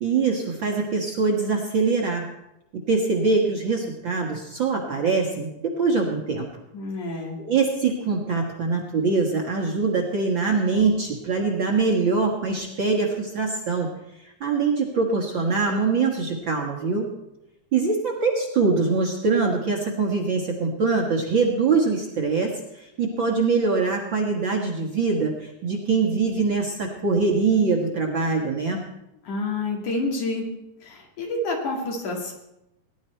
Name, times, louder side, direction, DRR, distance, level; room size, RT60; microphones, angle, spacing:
voice 1, 0.0-2.3 2.7-6.5 7.4-13.9 14.4-17.1 17.7-22.5 22.8-28.8, right 4 dB, 50° right, -1 dB, 1.7 m, -23 dB
voice 2, 6.7-7.3 29.2-30.5 30.8-32.3, left 2 dB, 70° left, 0 dB, 3.8 m, -28 dB
18.5 x 11.0 x 4.4 m, 0.88 s
omnidirectional pair, 3.6 m